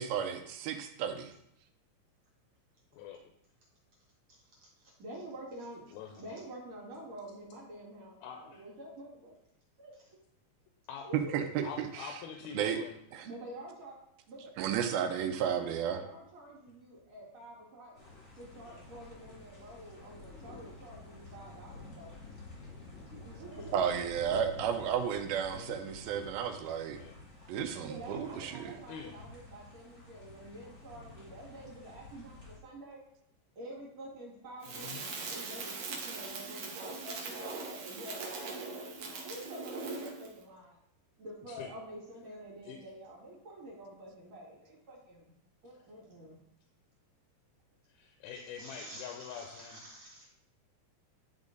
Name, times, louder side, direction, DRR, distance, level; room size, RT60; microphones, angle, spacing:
voice 1, 0.0-1.3 11.1-12.1 12.5-12.8 13.1-13.3 14.6-16.0 23.7-27.0 27.5-28.8, right 8 dB, 80° right, 6 dB, 2.4 m, -33 dB
voice 2, 5.0-5.9 6.1-9.3 9.8-10.2 11.0-11.5 13.2-14.0 14.3-18.0 18.3-22.1 23.2-23.8 27.8-33.0 33.6-40.8 41.2-45.3 45.6-46.4 48.3-50.3, right 1 dB, 50° right, -5 dB, 2.8 m, -48 dB
voice 3, 5.9-6.3 8.2-8.6 10.9-11.1 11.6-13.0 18.7-18.8 25.5-25.8 26.9-27.3 28.1-28.2 28.9-29.1 34.7-35.0 41.5-41.7 42.6-42.8 47.9-49.8, left 7 dB, 85° left, 3 dB, 2.6 m, -45 dB
sound 1, 17.9-32.6, left 3 dB, 35° left, 1.2 m, -51 dB
Crackle, 34.6-40.3, right 4 dB, 65° right, 1.8 m, -41 dB
10.5 x 3.7 x 3.9 m, 0.76 s
omnidirectional pair, 4.3 m